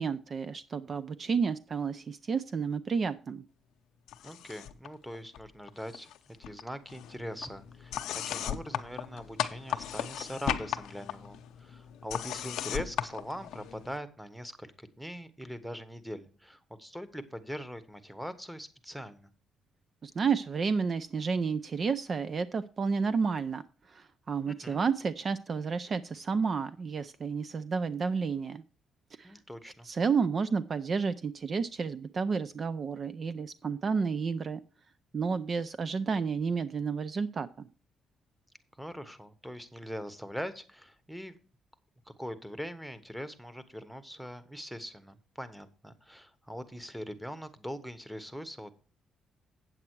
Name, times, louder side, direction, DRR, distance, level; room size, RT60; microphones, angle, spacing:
voice 1, 0.0-3.4 20.0-23.6 23.9-28.6 29.2-29.3 29.8-34.6 35.1-37.7, right 5 dB, 45° right, 13 dB, 0.5 m, -31 dB
sound 1, 4.1-4.9 5.1-6.2 6.4-14.0, left 11 dB, 85° left, 0.6 m, -37 dB
voice 2, 4.2-6.1 6.4-8.0 8.3-19.3 24.4-24.8 29.2-29.9 38.8-41.4 42.2-48.7, equal, 5° right, 13 dB, 1.1 m, -42 dB
8.6 x 7.9 x 4.6 m, 0.35 s
cardioid pair, 90°, 0 cm